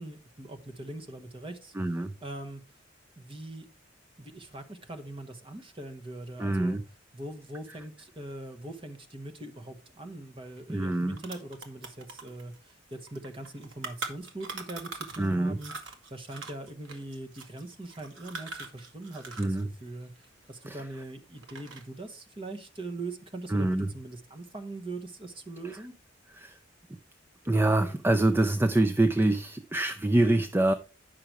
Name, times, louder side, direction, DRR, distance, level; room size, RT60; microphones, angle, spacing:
voice 1, 0.0-1.7 2.2-2.6 3.2-3.7 4.2-6.8 7.1-15.7 16.1-25.9, right 2 dB, 25° right, 1.1 m, -41 dB
voice 2, 1.8-2.1 6.4-6.8 10.7-11.2 15.2-15.6 19.4-19.7 20.7-20.8 23.5-23.9 25.6-25.8 26.3-26.6 27.4-30.7, right 2 dB, 10° right, 0.3 m, -25 dB
sound 1, 10.6-10.7 10.9-15.3 15.6-19.6 19.9-21.0 21.4-22.0, right 3 dB, 75° right, 1.8 m, -42 dB
9.2 x 5.8 x 4.6 m
head